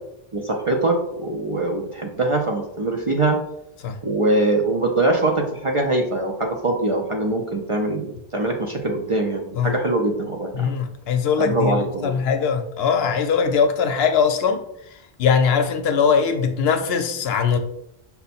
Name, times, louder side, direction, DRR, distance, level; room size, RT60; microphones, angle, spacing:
voice 1, 0.3-3.4 4.0-10.7 11.4-12.1, right 2 dB, 40° right, 1 dB, 0.5 m, -23 dB
voice 2, 10.5-14.6 15.2-17.6, left 6 dB, 75° left, 7 dB, 0.8 m, -21 dB
5.5 x 2.2 x 4.2 m, 0.77 s
omnidirectional pair, 1.1 m